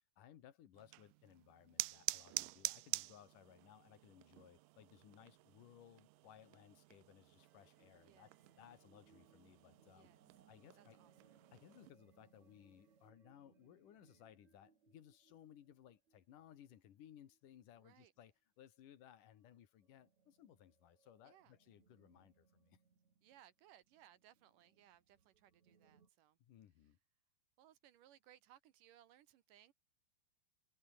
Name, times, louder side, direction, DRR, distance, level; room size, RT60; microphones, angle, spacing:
voice 1, 0.0-8.3 8.6-10.1 10.5-11.0 11.5-22.8 26.4-27.0, left 10 dB, 65° left, 3.2 m, -62 dB
sound 1, 0.7-11.9, right 21 dB, 85° right, 1.8 m, -48 dB
sound 2, 7.4-18.0 18.6-18.7 19.0-19.2 19.6-26.1, right 5 dB, 50° right, 5.0 m, -73 dB
voice 2, 9.9-10.4 10.7-11.3 17.8-18.1 21.2-21.6 23.2-26.4 27.6-29.7, right 11 dB, 70° right, 2.6 m, -66 dB
omnidirectional pair, 4.3 m